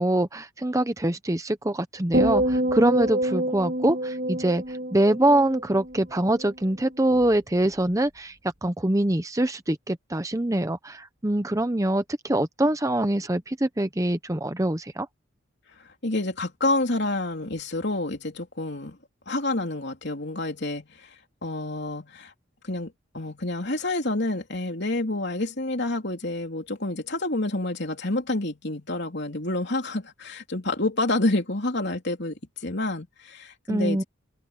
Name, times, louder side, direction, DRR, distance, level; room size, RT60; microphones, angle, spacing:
voice 1, 0.0-8.4 8.6-15.1 33.7-34.0, right 1 dB, 15° right, 0.7 m, -24 dB
sound 1, 2.1-6.5 6.8-7.2, right 1 dB, 40° right, 7.5 m, -27 dB
voice 2, 16.0-19.0 19.3-21.1 21.4-22.3 22.6-34.0, left 2 dB, 55° left, 3.5 m, -28 dB
open air
head